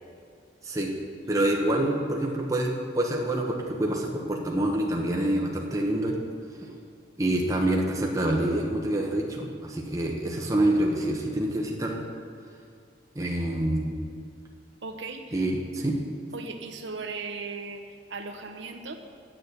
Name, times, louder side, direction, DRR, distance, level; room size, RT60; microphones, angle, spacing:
voice 1, 1.3-6.2 6.6-6.7 7.2-12.0 13.1-13.9 15.3-16.0, right 1 dB, 15° right, -1 dB, 1.0 m, -26 dB
voice 2, 14.8-15.4 16.3-18.9, right 4 dB, 80° right, 5 dB, 1.0 m, -37 dB
9.4 x 7.5 x 8.1 m, 2.3 s
head